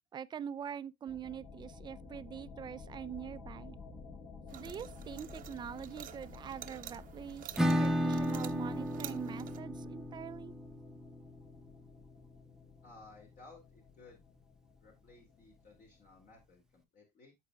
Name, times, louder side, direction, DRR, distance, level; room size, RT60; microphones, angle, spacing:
voice 1, 0.1-3.8 4.5-10.6, right 8 dB, 25° right, 0.4 m, -44 dB
sound 1, 1.1-16.4, left 4 dB, 70° left, 4.8 m, -53 dB
sound 2, 4.5-9.6, right 12 dB, 45° right, 0.7 m, -50 dB
Acoustic guitar / Strum, 7.6-13.0, equal, 5° right, 0.8 m, -35 dB
voice 2, 12.8-14.3 14.8-17.3, left 3 dB, 45° left, 2.3 m, -58 dB
13.5 x 4.9 x 2.3 m
cardioid pair, 125°, 19 cm